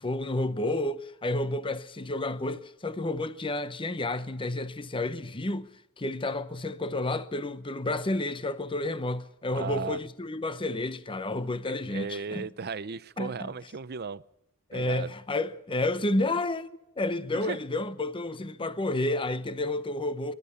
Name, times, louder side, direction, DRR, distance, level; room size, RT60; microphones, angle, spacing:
voice 1, 0.0-12.5 13.2-13.5 14.7-16.7 17.0-20.3, left 2 dB, 25° left, 0.8 m, -30 dB
voice 2, 9.5-10.0 11.9-14.2 14.7-15.1 17.3-17.6, right 5 dB, 50° right, 0.7 m, -36 dB
23.0 x 12.5 x 9.7 m
head